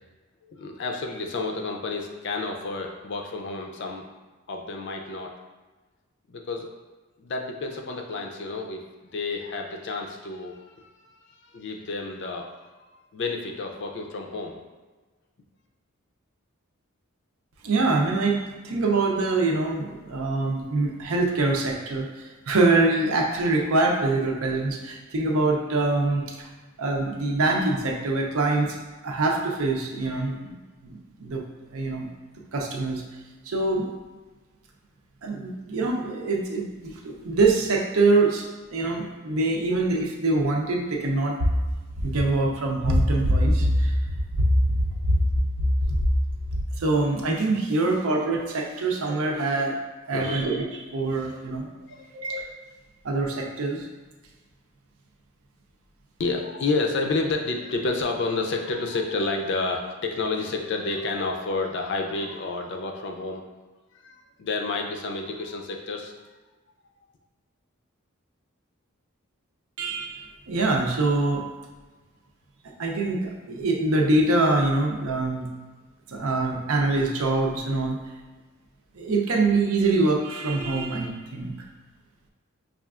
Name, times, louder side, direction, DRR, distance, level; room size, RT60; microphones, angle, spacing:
voice 1, 0.4-4.0 4.5-5.3 6.3-6.7 7.2-10.9 11.3-12.5 12.8-14.6 50.1-50.4 51.6-52.1 56.2-63.4 63.9-66.1, left 3 dB, 55° left, 2 dB, 0.4 m, -30 dB
voice 2, 17.6-26.5 26.8-28.8 29.0-30.6 30.8-31.4 31.7-32.1 32.5-33.0 33.4-33.9 35.2-38.5 38.7-41.5 42.0-45.2 45.9-46.1 46.8-49.8 50.1-51.7 52.1-52.4 53.0-53.9 69.8-71.5 72.8-75.5 76.1-78.0 78.9-81.5, right 2 dB, 85° right, 0 dB, 0.6 m, -24 dB
5.5 x 2.4 x 2.4 m, 1.3 s
head